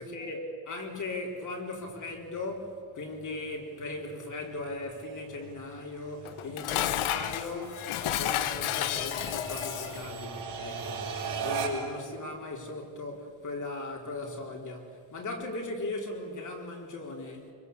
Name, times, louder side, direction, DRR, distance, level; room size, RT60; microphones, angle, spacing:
voice 1, 0.0-17.5, left 2 dB, 35° left, 4.3 m, -38 dB
sound 1, 1.8-12.0, right 5 dB, 55° right, 5.5 m, -40 dB
Dishes pots and pans, 6.2-10.1, left 12 dB, 85° left, 1.3 m, -31 dB
26.0 x 24.0 x 8.3 m
cardioid pair, 150°, 49 cm